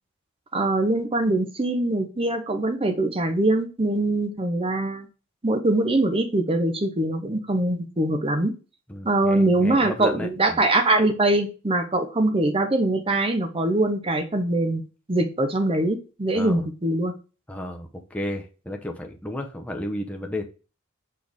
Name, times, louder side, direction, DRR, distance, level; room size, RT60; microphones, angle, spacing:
voice 1, 0.5-5.1 5.4-8.5 9.0-17.1, right 2 dB, 25° right, 7 dB, 0.8 m, -23 dB
voice 2, 8.9-10.6 16.3-16.6 17.5-20.5, left 1 dB, 5° left, 2 dB, 0.8 m, -33 dB
6.4 x 4.3 x 3.5 m, 0.33 s
head